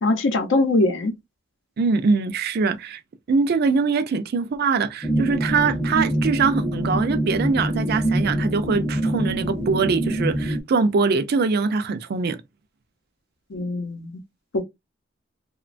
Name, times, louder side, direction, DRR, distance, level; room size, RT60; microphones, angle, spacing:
voice 1, 0.0-1.1 13.5-14.2 14.5-14.6, left 2 dB, 65° left, 0.6 m, -22 dB
voice 2, 1.8-3.0 3.3-12.4, right 4 dB, 55° right, 0.4 m, -22 dB
sound 1, 5.0-10.6, right 1 dB, 5° left, 0.5 m, -24 dB
3.0 x 2.2 x 2.4 m
head